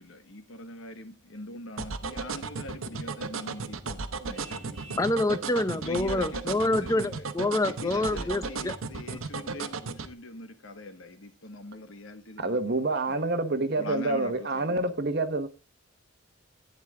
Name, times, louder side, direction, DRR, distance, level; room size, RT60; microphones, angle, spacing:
voice 1, 0.0-5.1 5.7-7.3 7.7-12.6 13.1-13.2 13.7-14.8, left 2 dB, 75° left, 1.4 m, -42 dB
sound 1, 1.8-10.1, right 4 dB, 90° right, 0.9 m, -34 dB
Vehicle horn car horn honking, 4.3-5.2, right 3 dB, 30° right, 3.1 m, -49 dB
voice 2, 5.0-8.7 9.1-9.2, left 2 dB, 15° left, 0.5 m, -27 dB
voice 3, 12.4-15.5, right 2 dB, 55° right, 1.2 m, -27 dB
11.5 x 9.1 x 3.7 m
head